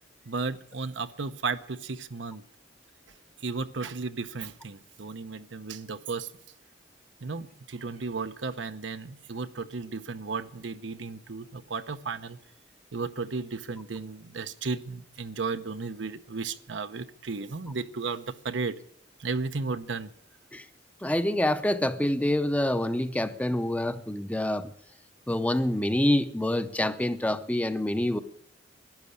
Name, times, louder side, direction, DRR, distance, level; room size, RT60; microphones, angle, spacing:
voice 1, 0.3-2.4 3.4-6.3 7.2-12.4 12.9-18.7 19.2-20.1, right 4 dB, 80° right, 0.8 m, -34 dB
voice 2, 21.0-24.7 25.3-28.2, left 1 dB, 10° left, 0.6 m, -26 dB
12.0 x 10.5 x 10.0 m
head